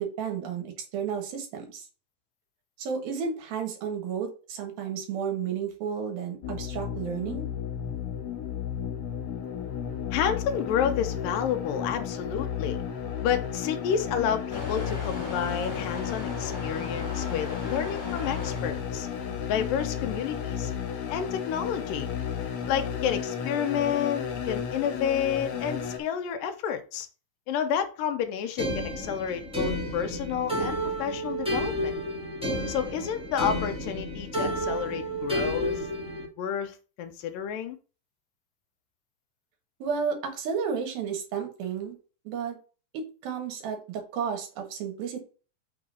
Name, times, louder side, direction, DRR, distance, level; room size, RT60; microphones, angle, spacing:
voice 1, 0.0-1.8 2.8-7.5 39.8-42.0 42.2-42.6 42.9-45.3, right 6 dB, 80° right, 4 dB, 3.3 m, -32 dB
sound 1, 6.4-26.0, left 8 dB, 60° left, 2.3 m, -33 dB
voice 2, 10.1-12.8 13.2-19.1 19.5-20.7 21.1-22.1 22.7-27.1 27.5-32.0 32.7-35.8 36.4-37.8, left 8 dB, 75° left, 8 dB, 2.4 m, -30 dB
Motor vehicle (road) / Engine starting / Accelerating revving vroom, 14.5-20.4, left 3 dB, 20° left, 1.3 m, -39 dB
sound 2, 28.6-36.3, equal, ahead, 1.4 m, -31 dB
6.1 x 3.9 x 5.5 m, 0.35 s
omnidirectional pair, 4.1 m